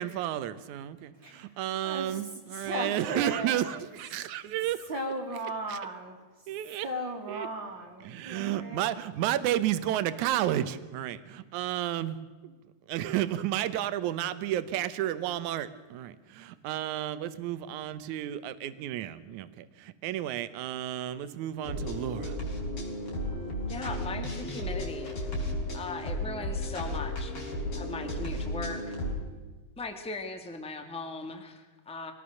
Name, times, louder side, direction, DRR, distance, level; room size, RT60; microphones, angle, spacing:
voice 1, 0.0-4.9 5.7-5.8 6.5-6.9 7.3-7.5 8.0-12.2 12.9-22.4, right 12 dB, 75° right, 14 dB, 2.3 m, -32 dB
voice 2, 1.8-2.2 2.5-3.8 4.4-4.5 4.9-6.2 6.8-8.9, right 1 dB, 40° right, 2 dB, 2.8 m, -36 dB
sound 1, 21.6-29.1, left 1 dB, 45° left, 5.1 m, -34 dB
voice 3, 23.7-25.3 25.7-27.3 27.8-28.9 29.8-32.1, left 3 dB, 5° left, 6 dB, 1.0 m, -39 dB
23.5 x 18.0 x 6.5 m, 1.3 s
omnidirectional pair, 3.7 m